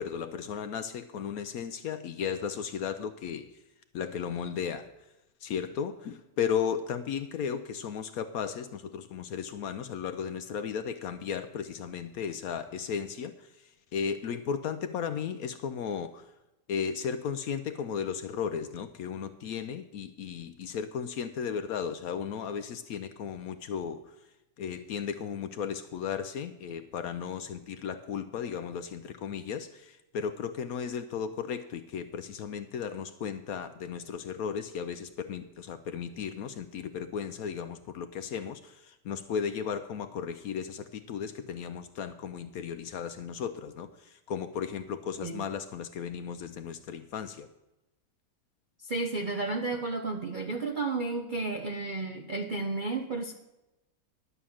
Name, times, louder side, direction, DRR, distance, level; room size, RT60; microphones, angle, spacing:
voice 1, 0.0-3.5 3.9-4.9 5.4-13.5 13.9-16.3 16.7-24.0 24.6-47.5, left 7 dB, 70° left, 10 dB, 0.9 m, -35 dB
voice 2, 48.8-53.3, right 3 dB, 55° right, 4 dB, 0.5 m, -32 dB
11.5 x 6.3 x 7.2 m, 0.96 s
omnidirectional pair, 1.9 m